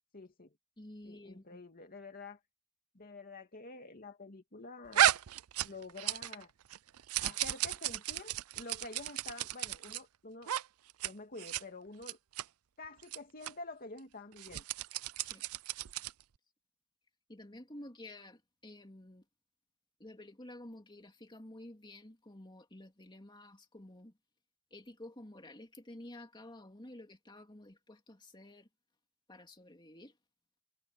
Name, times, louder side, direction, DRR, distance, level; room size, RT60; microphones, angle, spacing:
voice 1, 0.1-0.5 1.0-2.4 2.9-5.2 5.6-6.5 7.2-10.5 11.0-12.2 12.8-14.6, left 3 dB, 45° left, 2.4 m, -48 dB
voice 2, 0.8-1.6 15.2-15.4 17.3-19.3 20.0-24.1 24.7-28.7 29.3-30.2, left 1 dB, 20° left, 2.9 m, -51 dB
sound 1, 4.9-6.4 6.7-10.0 10.4-10.6 10.9-11.1 11.4-11.6 12.0-12.4 13.0-13.2 13.4-13.5 14.3-16.2, right 12 dB, 80° right, 0.5 m, -33 dB
head